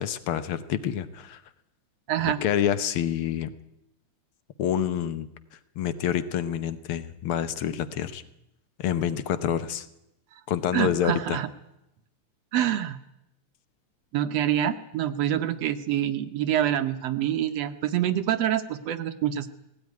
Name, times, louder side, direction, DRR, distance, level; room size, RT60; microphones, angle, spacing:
voice 1, 0.0-1.4 2.2-3.5 4.6-5.3 5.8-8.2 8.8-9.9 10.5-11.4, left 9 dB, 65° left, 13 dB, 1.5 m, -27 dB
voice 2, 2.1-2.4 10.7-11.5 12.5-13.0 14.1-19.5, right 11 dB, 70° right, 9 dB, 1.8 m, -26 dB
19.5 x 17.5 x 9.5 m, 0.86 s
omnidirectional pair, 3.4 m